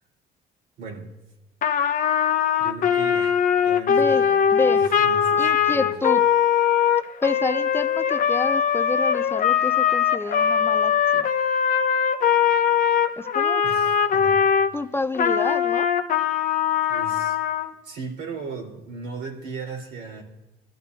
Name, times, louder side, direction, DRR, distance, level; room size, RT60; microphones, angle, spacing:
voice 1, 0.8-1.1 2.6-3.4 3.6-5.9 13.6-14.4 16.9-17.4 17.8-20.2, right 4 dB, 80° right, -1 dB, 4.0 m, -37 dB
Trumpet, 1.6-14.7 15.1-17.7, left 8 dB, 55° left, 0.9 m, -21 dB
voice 2, 3.9-4.3 4.5-4.8 5.4-6.2 7.2-11.3 13.2-13.6 14.7-15.9, left 3 dB, 15° left, 11 dB, 0.4 m, -28 dB
25.0 x 13.5 x 2.7 m, 1.0 s
cardioid pair, 110°, 17 cm